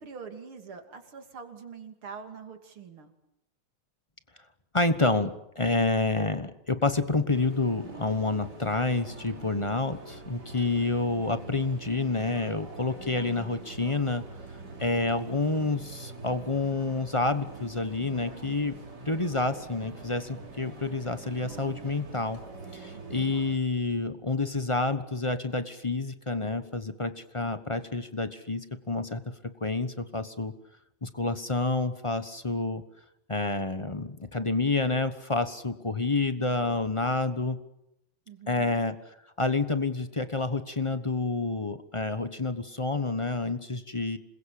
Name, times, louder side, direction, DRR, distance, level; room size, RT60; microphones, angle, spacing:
voice 1, 0.0-3.1 22.9-23.4 38.3-38.7, right 5 dB, 80° right, 5 dB, 3.6 m, -44 dB
voice 2, 4.7-14.2 14.8-18.8 19.0-22.4 22.7-29.2 29.6-30.5 31.0-32.8 33.3-37.6 38.5-39.0 39.4-44.2, left 3 dB, 25° left, 10 dB, 0.8 m, -28 dB
sound 1, 7.3-23.6, right 3 dB, 50° right, 3.9 m, -44 dB
sound 2, 14.8-25.4, equal, 70° left, 3.1 m, -56 dB
27.0 x 21.5 x 8.5 m, 0.84 s
omnidirectional pair, 2.3 m